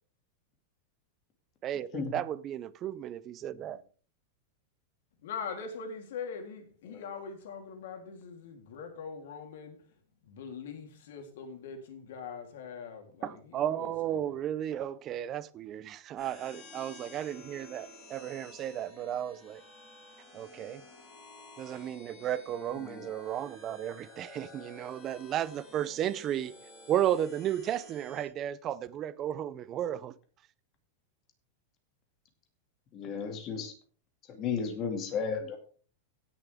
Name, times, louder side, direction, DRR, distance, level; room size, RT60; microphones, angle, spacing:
voice 1, 1.6-3.8 13.2-19.6 20.3-20.8 21.6-26.5 26.9-30.1, right 11 dB, 25° right, 0.5 m, -34 dB
voice 2, 5.2-14.4, left 5 dB, 70° left, 3.3 m, -42 dB
sound 1, 16.2-28.3, left 3 dB, 5° left, 5.2 m, -52 dB
voice 3, 32.9-33.7 34.3-35.6, left 6 dB, 25° left, 2.2 m, -34 dB
16.5 x 7.0 x 3.5 m
supercardioid pair, 170°, 0 cm